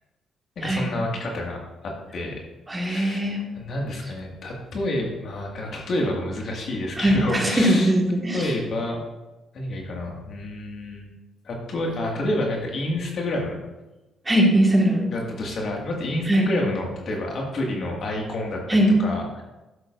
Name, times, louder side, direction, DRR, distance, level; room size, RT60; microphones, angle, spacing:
voice 1, 0.6-2.4 2.9-3.2 3.5-7.9 8.3-9.0 9.5-11.1 11.4-13.6 15.1-18.6 19.0-19.4, left 1 dB, 60° left, 0 dB, 2.0 m, -29 dB
voice 2, 2.7-3.4 7.0-8.5 14.2-15.1 16.3-16.5 18.7-18.9, equal, 20° right, -1 dB, 1.8 m, -20 dB
12.0 x 6.7 x 2.6 m, 1.0 s
cardioid pair, 90°, 0 cm